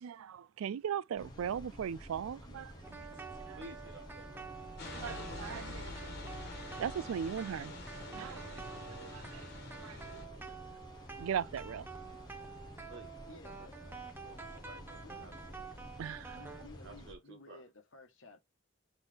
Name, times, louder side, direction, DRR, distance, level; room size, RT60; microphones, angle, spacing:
voice 1, 0.0-3.1 3.5-3.6 4.9-5.9 6.2-6.4 6.8-7.7 8.1-8.5 8.9-9.5 9.8-10.5 11.2-11.9 16.0-16.4, right 8 dB, 90° right, 0.3 m, -39 dB
sound 1, 1.2-17.1, equal, 20° left, 1.0 m, -51 dB
sound 2, 2.8-16.7, right 5 dB, 10° right, 0.7 m, -49 dB
voice 2, 3.5-4.8 12.9-13.2 14.2-15.6 16.8-17.6, right 2 dB, 60° right, 1.2 m, -53 dB
sound 3, 4.8-10.3, left 3 dB, 50° left, 1.7 m, -46 dB
voice 3, 13.3-13.8 15.0-15.5 16.3-18.4, left 3 dB, 75° left, 1.2 m, -55 dB
4.0 x 3.9 x 3.3 m
head